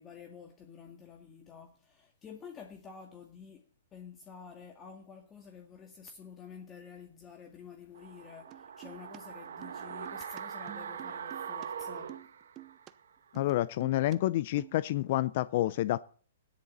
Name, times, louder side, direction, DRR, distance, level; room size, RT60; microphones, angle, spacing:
voice 1, 0.0-12.1, left 6 dB, 20° left, 2.1 m, -50 dB
sound 1, 7.9-13.1 13.4-13.5, right 7 dB, 65° right, 1.5 m, -42 dB
sound 2, 8.5-9.2 9.4-11.7 11.9-12.9 13.3-14.2 14.4-14.8, right 15 dB, 30° right, 0.9 m, -50 dB
voice 2, 13.3-16.0, left 15 dB, 50° left, 0.6 m, -29 dB
17.0 x 10.5 x 4.2 m
figure-of-eight pair, 120°, 0 cm